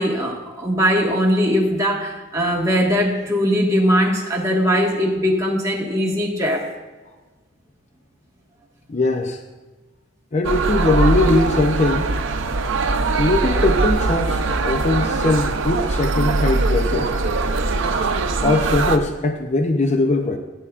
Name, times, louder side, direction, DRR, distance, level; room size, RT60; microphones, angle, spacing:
voice 1, 0.0-6.7, equal, 15° right, -3 dB, 1.6 m, -20 dB
voice 2, 8.9-9.4 10.3-12.1 13.2-17.1 18.4-20.4, left 2 dB, 35° left, 5 dB, 0.6 m, -20 dB
sound 1, 10.4-19.0, right 3 dB, 70° right, 0.6 m, -21 dB
16.5 x 10.5 x 2.5 m, 1.2 s
head